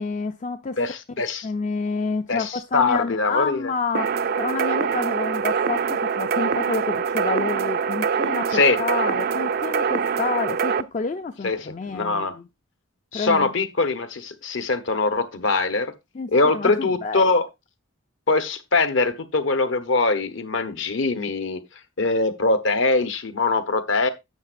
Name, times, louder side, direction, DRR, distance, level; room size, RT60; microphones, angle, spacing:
voice 1, 0.0-0.8 1.4-12.5 13.1-13.5 16.1-17.3, left 4 dB, 35° left, 0.4 m, -29 dB
voice 2, 0.8-1.5 2.3-3.7 8.5-8.8 11.4-12.4 13.1-15.9 16.3-17.5 18.3-21.6 22.0-24.1, left 3 dB, 60° left, 1.0 m, -22 dB
sound 1, 3.9-10.8, right 6 dB, 45° right, 0.4 m, -24 dB
10.5 x 7.6 x 2.5 m
head